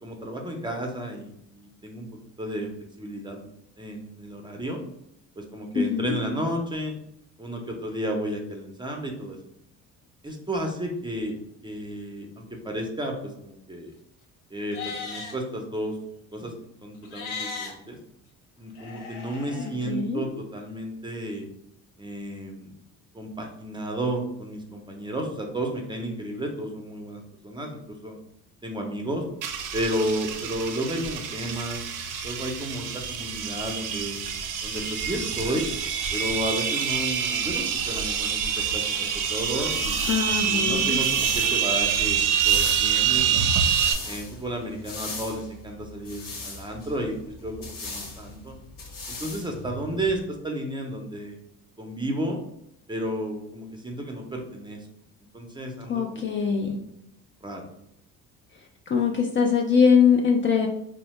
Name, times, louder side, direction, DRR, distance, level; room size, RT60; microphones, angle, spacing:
voice 1, 0.0-2.7 3.0-3.5 3.8-4.8 5.4-7.0 7.4-9.4 10.2-11.4 11.6-13.9 14.5-16.0 16.3-16.5 16.8-18.0 18.6-21.5 22.0-22.7 23.1-28.2 28.6-29.2 29.7-31.8 32.2-34.2 34.6-35.6 36.1-40.0 40.5-43.5 44.1-48.6 49.2-51.4 51.8-52.4 52.9-54.9 55.3-56.7 57.4-57.7, right 1 dB, 10° right, 2 dB, 0.6 m, -32 dB
voice 2, 5.8-6.1 19.6-20.2 40.1-41.0 55.9-56.8 58.9-60.7, left 6 dB, 30° left, 1 dB, 0.4 m, -22 dB
Livestock farm animals working animals, 14.6-15.4 17.0-17.7 18.8-19.7, left 4 dB, 80° left, 0.8 m, -36 dB
sound 1, 29.4-43.9, right 8 dB, 55° right, 0.5 m, -26 dB
sound 2, 39.3-50.2, left 2 dB, 60° left, 1.1 m, -39 dB
2.7 x 2.1 x 3.1 m, 0.77 s
supercardioid pair, 75°, 38 cm